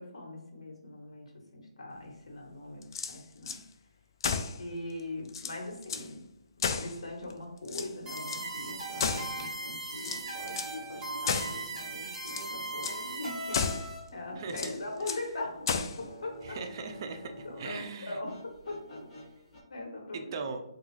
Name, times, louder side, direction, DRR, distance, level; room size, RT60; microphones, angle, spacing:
voice 1, 0.0-3.9 4.6-15.5 16.0-16.6 17.4-19.1 19.7-20.3, left 2 dB, 70° left, 0 dB, 1.1 m, -41 dB
sound 1, 2.8-3.6 4.2-4.6 5.0-5.1 5.3-6.1 6.6-7.3 7.6-8.4 9.0-9.6 10.0-10.8 11.3-11.6 12.1-12.5 12.8-13.0 13.5-13.9 14.5-15.3 15.7-16.0, left 5 dB, 45° left, 0.3 m, -33 dB
sound 2, 7.6-17.9 18.2-19.6, left 1 dB, 25° left, 1.1 m, -51 dB
sound 3, 8.1-14.0, right 2 dB, 20° right, 0.9 m, -38 dB
voice 2, 14.4-14.7 16.4-18.2 20.1-20.6, right 4 dB, 35° right, 6 dB, 0.4 m, -39 dB
3.5 x 2.3 x 3.1 m, 0.86 s
hypercardioid pair, 155°, 3 cm